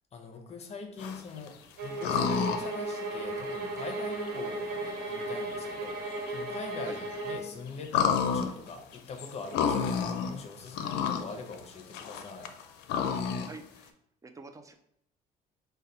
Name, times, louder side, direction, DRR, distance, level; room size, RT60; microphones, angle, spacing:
voice 1, 0.1-12.6, left 4 dB, 40° left, 4 dB, 0.7 m, -42 dB
sound 1, 1.0-1.5 2.0-2.7 3.2-3.3 4.2-4.3 5.5-5.6 5.9-6.0 6.2-6.3 6.9-7.2 7.8-10.3 10.7-11.2 11.5-13.5, left 7 dB, 85° left, 0.5 m, -29 dB
sound 2, 1.8-7.5, right 2 dB, 65° right, 1.0 m, -35 dB
voice 2, 13.4-13.9 14.2-14.7, right 3 dB, 20° right, 6 dB, 0.4 m, -46 dB
4.1 x 2.2 x 3.9 m, 0.72 s
cardioid pair, 110°, 17 cm